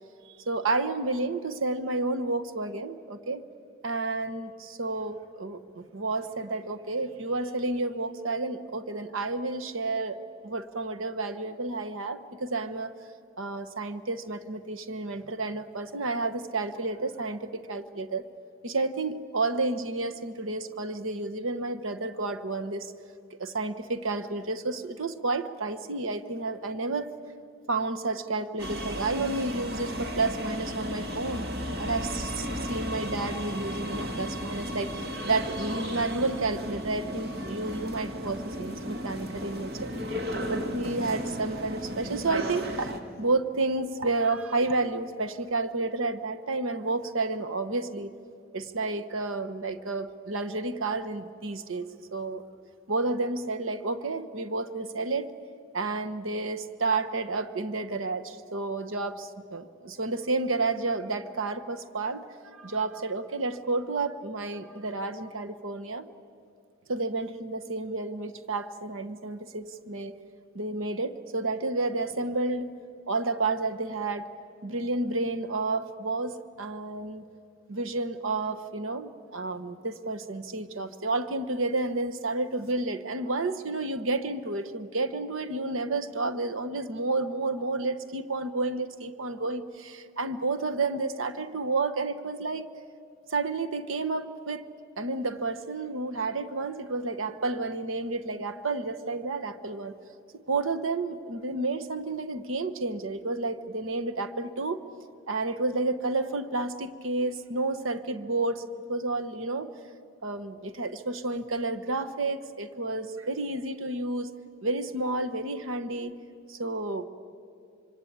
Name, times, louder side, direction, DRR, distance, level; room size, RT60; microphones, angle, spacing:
voice 1, 0.3-3.4 3.8-12.9 13.4-18.2 18.6-22.9 23.4-27.1 27.7-31.5 31.8-39.9 40.5-48.1 48.5-52.4 52.9-55.3 55.7-62.2 62.6-66.1 66.9-70.1 70.5-72.7 73.1-74.3 74.6-77.2 77.7-92.7 93.3-94.7 95.0-99.9 100.5-104.8 105.3-109.7 110.2-114.3 114.6-116.1 116.5-117.0, right 3 dB, 75° right, 9 dB, 1.1 m, -31 dB
sound 1, 28.6-43.0, equal, 50° right, 2.2 m, -34 dB
25.5 x 25.0 x 8.7 m, 2.5 s
head